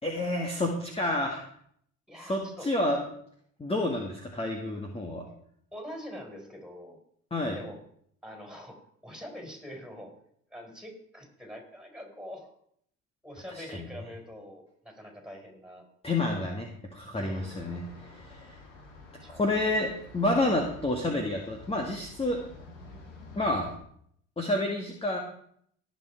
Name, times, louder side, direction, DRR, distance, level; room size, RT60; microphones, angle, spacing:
voice 1, 0.0-1.4 2.2-3.1 3.6-5.2 7.3-7.6 13.5-13.9 16.0-18.6 19.3-22.4 23.4-23.7 24.4-25.2, left 1 dB, 15° left, 1 dB, 2.0 m, -29 dB
voice 2, 2.1-2.7 5.7-7.0 7.5-7.8 8.2-8.8 9.0-10.1 10.5-12.6 13.2-15.8 17.1-17.5 19.2-19.4, equal, ahead, 2 dB, 4.8 m, -44 dB
sound 1, 17.3-23.8, left 3 dB, 85° left, 2.9 m, -49 dB
18.0 x 6.2 x 4.6 m, 0.67 s
hypercardioid pair, 70°, 36 cm